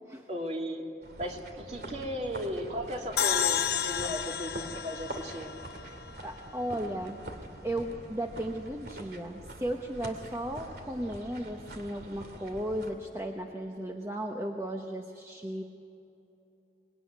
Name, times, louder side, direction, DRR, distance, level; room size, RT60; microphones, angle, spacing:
voice 1, 0.3-0.8 1.2-1.4 1.7-5.5, equal, 40° right, 1 dB, 2.7 m, -35 dB
sound 1, 1.0-12.9, right 1 dB, 60° right, 2.5 m, -45 dB
sound 2, 3.2-6.5, left 8 dB, 60° left, 0.8 m, -31 dB
voice 2, 6.2-7.2 7.6-15.6, right 1 dB, 15° right, 2 dB, 1.1 m, -35 dB
24.5 x 20.5 x 9.5 m, 2.8 s
head